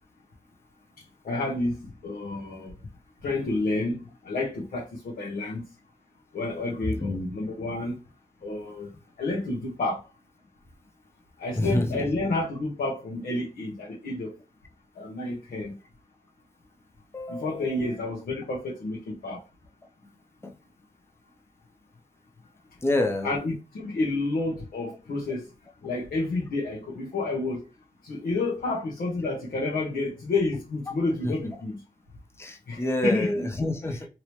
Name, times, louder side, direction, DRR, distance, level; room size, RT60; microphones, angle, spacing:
voice 1, 1.2-2.7 3.2-5.6 6.3-8.0 8.4-8.9 9.2-10.0 11.4-14.3 15.0-15.7 17.3-19.4 23.2-25.4 25.8-27.6 28.0-31.8 32.7-33.5, left 2 dB, 70° left, 1.0 m, -30 dB
voice 2, 7.0-7.3 11.6-12.0 17.1-17.8 20.4-20.6 22.8-23.4 31.2-31.3 32.4-34.1, left 1 dB, 15° left, 0.7 m, -28 dB
2.9 x 2.8 x 3.2 m
cardioid pair, 55°, 15 cm